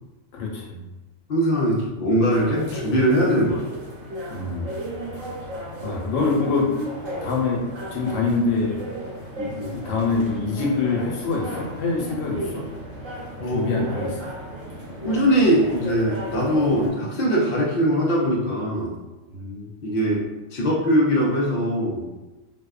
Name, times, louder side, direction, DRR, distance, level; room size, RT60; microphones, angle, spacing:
voice 1, 0.3-0.8 4.3-4.7 5.8-6.7 7.2-8.8 9.7-12.7 13.4-14.3 19.3-19.7, left 4 dB, 85° left, -2 dB, 1.0 m, -25 dB
voice 2, 1.3-3.6 9.4-9.8 13.4-13.9 15.0-19.0 19.8-22.1, equal, 55° left, -4 dB, 0.7 m, -21 dB
sound 1, 2.3-16.9, equal, 85° right, 1.1 m, -35 dB
2.7 x 2.0 x 2.3 m, 1.1 s
omnidirectional pair, 1.3 m